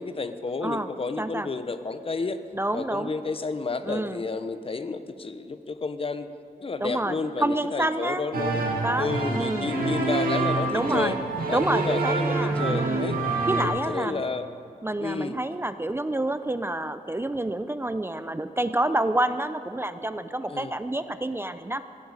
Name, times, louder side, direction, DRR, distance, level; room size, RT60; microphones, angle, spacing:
voice 1, 0.0-2.4 2.7-6.3 6.6-8.6 9.0-11.2 11.5-13.2 13.6-14.5 15.0-15.4 20.5-20.7, left 4 dB, 40° left, 11 dB, 0.8 m, -31 dB
voice 2, 1.2-1.5 2.5-3.1 3.8-4.2 6.8-8.2 8.8-9.8 10.7-11.2 11.5-13.0 13.5-14.2 14.8-21.8, right 1 dB, 15° right, 11 dB, 0.5 m, -28 dB
sound 1, 8.3-13.7, right 3 dB, 85° right, 2.1 m, -26 dB
17.5 x 15.0 x 4.9 m, 2.6 s
wide cardioid pair, 90°, 15 cm